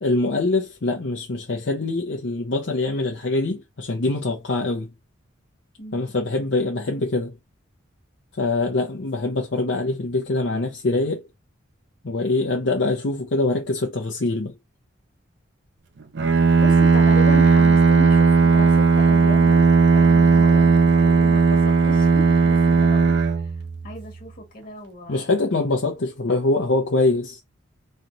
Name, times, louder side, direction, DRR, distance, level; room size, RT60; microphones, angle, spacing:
voice 1, 0.0-4.9 5.9-7.3 8.4-11.3 12.0-14.5 25.1-27.4, left 2 dB, 65° left, 0.7 m, -24 dB
voice 2, 5.8-6.1 16.6-19.6 19.9-23.2 23.8-25.3, left 1 dB, 45° left, 1.5 m, -35 dB
Bowed string instrument, 16.2-24.2, right 4 dB, 60° right, 0.6 m, -16 dB
3.3 x 2.9 x 3.9 m
head